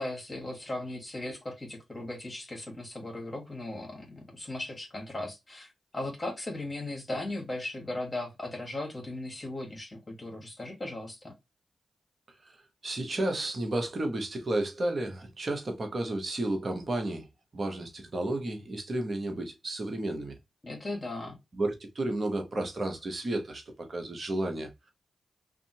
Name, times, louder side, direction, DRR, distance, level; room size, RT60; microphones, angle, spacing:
voice 1, 0.0-11.3 20.6-21.4, left 2 dB, 30° left, 1.3 m, -37 dB
voice 2, 12.8-17.3 17.5-20.4 21.5-24.7, right 1 dB, 50° right, 1.0 m, -32 dB
2.6 x 2.5 x 2.7 m
supercardioid pair, 45°, 0 cm